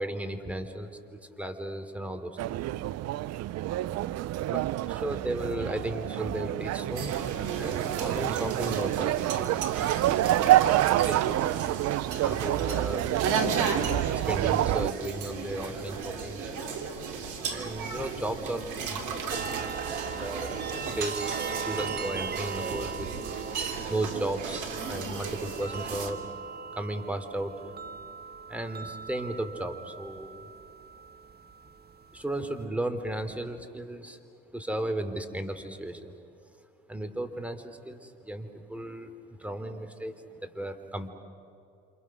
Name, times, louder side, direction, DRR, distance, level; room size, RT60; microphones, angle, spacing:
voice 1, 0.0-2.6 4.5-7.1 7.6-9.5 11.0-11.5 12.2-13.1 14.1-16.4 17.4-19.6 20.1-23.1 23.9-26.3 26.7-27.5 28.5-30.4 32.1-34.2 34.5-36.1 36.9-39.1 39.4-41.1, right 1 dB, 5° right, 6 dB, 3.3 m, -35 dB
sound 1, 2.4-14.9, right 14 dB, 55° right, 0.6 m, -27 dB
sound 2, 6.9-26.1, right 5 dB, 70° right, 2.9 m, -35 dB
sound 3, 19.3-32.6, right 6 dB, 30° right, 1.1 m, -40 dB
28.5 x 27.5 x 6.2 m, 2.6 s
hypercardioid pair, 60°, 32 cm